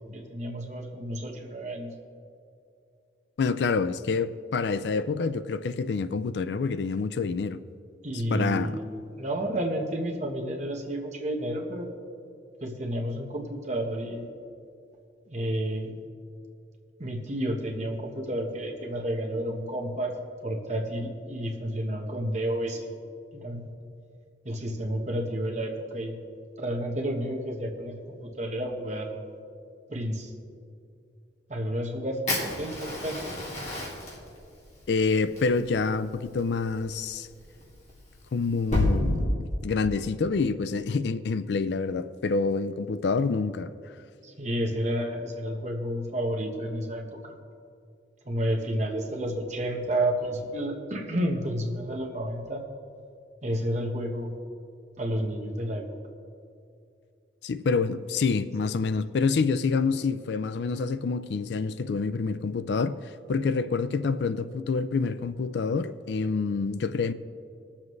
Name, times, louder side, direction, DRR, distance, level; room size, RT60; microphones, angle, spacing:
voice 1, 0.1-1.9 8.0-8.9 9.2-11.9 12.6-14.3 15.3-16.0 17.0-20.1 20.4-22.9 23.3-23.6 24.4-26.1 26.6-29.2 29.9-30.3 31.5-33.3 44.2-47.4 48.3-52.6 53.4-54.3 55.0-55.8, right 1 dB, 40° right, 1.3 m, -31 dB
voice 2, 3.4-7.6 8.3-8.8 34.9-37.3 38.3-43.7 57.4-63.0 63.3-67.1, left 4 dB, 70° left, 0.4 m, -27 dB
Fire, 32.3-38.9, left 2 dB, 40° left, 2.1 m, -33 dB
20.5 x 7.3 x 3.2 m
head